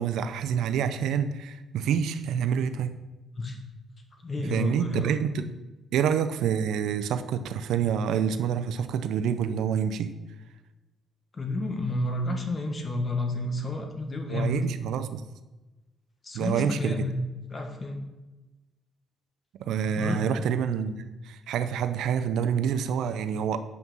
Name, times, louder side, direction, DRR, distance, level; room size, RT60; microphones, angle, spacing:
voice 1, 0.0-3.0 4.4-5.5 5.9-10.1 14.3-15.2 16.3-17.1 19.6-23.6, right 8 dB, 80° right, 10 dB, 0.6 m, -27 dB
voice 2, 4.2-5.1 11.4-14.6 16.2-17.2 17.5-18.0 20.0-20.2, left 2 dB, 35° left, 4 dB, 1.5 m, -30 dB
7.6 x 5.8 x 5.5 m, 1.1 s
cardioid pair, 90°, 0 cm